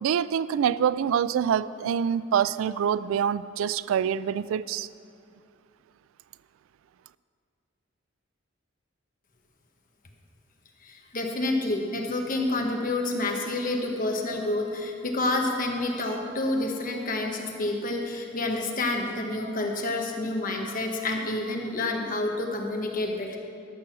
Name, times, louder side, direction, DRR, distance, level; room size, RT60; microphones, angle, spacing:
voice 1, 0.0-4.9, right 8 dB, 85° right, 17 dB, 0.3 m, -25 dB
voice 2, 10.8-23.4, left 2 dB, 45° left, 2 dB, 1.2 m, -28 dB
13.5 x 6.3 x 6.0 m, 2.4 s
head